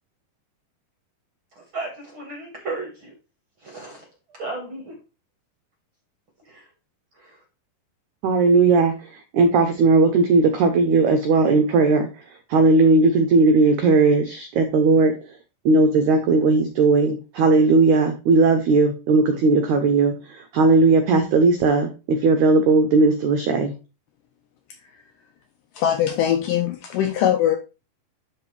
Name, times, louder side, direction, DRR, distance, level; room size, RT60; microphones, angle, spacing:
voice 1, 1.5-3.1 3.6-4.1 4.4-5.0 6.4-6.7 7.1-7.4, right 3 dB, 60° right, 1 dB, 1.4 m, -34 dB
voice 2, 8.2-12.2 12.5-15.1 15.7-23.7, right 3 dB, 80° right, 7 dB, 1.7 m, -17 dB
voice 3, 25.7-27.6, left 10 dB, 85° left, 5 dB, 1.9 m, -21 dB
12.0 x 4.0 x 3.2 m, 0.31 s
omnidirectional pair, 4.4 m